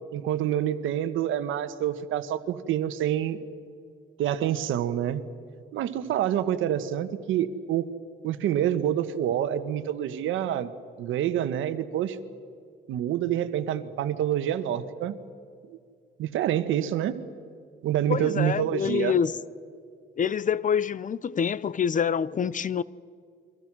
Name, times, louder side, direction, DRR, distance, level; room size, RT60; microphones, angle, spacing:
voice 1, 0.1-3.4 4.2-5.2 5.7-7.9 8.2-10.7 11.0-12.2 12.9-15.2 15.7-15.8 16.2-17.2 17.8-19.1, right 11 dB, 85° right, 1.4 m, -27 dB
voice 2, 18.1-19.3 20.2-22.8, left 7 dB, 40° left, 0.7 m, -26 dB
29.0 x 23.5 x 6.2 m
cardioid pair, 90°, 20 cm